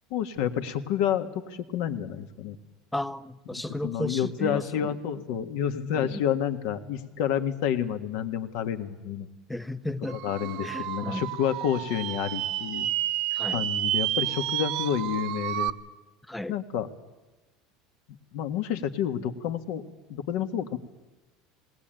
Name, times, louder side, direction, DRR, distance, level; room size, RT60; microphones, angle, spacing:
voice 1, 0.1-2.6 3.8-9.3 10.2-12.9 13.5-15.7 16.5-16.9 18.3-19.8 20.1-20.8, left 9 dB, 65° left, 1.8 m, -29 dB
voice 2, 2.9-5.0 5.9-6.2 9.5-10.2 10.6-11.3 13.3-13.7 16.3-16.6, left 1 dB, 5° left, 0.7 m, -34 dB
sound 1, 10.1-15.7, right 13 dB, 55° right, 0.9 m, -30 dB
19.5 x 19.0 x 9.1 m
supercardioid pair, 150°, 0 cm